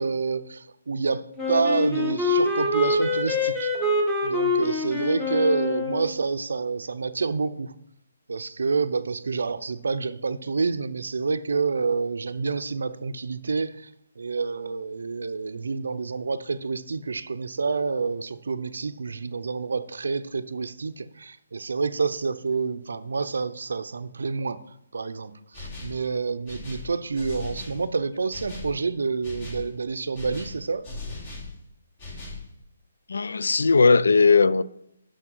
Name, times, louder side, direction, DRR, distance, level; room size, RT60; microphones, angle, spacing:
voice 1, 0.0-3.7 4.2-7.7 8.3-13.9 14.2-24.6 24.9-30.8, right 4 dB, 80° right, 0.5 m, -28 dB
Wind instrument woodwind instrument, 1.4-6.1, left 2 dB, 5° left, 1.3 m, -25 dB
sound 1, 25.5-26.0 26.5-27.8 28.3-28.7 29.2-29.7 30.1-31.5 32.0-32.5, left 3 dB, 30° left, 2.4 m, -38 dB
voice 2, 33.1-34.6, left 4 dB, 80° left, 0.4 m, -18 dB
6.4 x 6.1 x 4.5 m
hypercardioid pair, 155°, 0 cm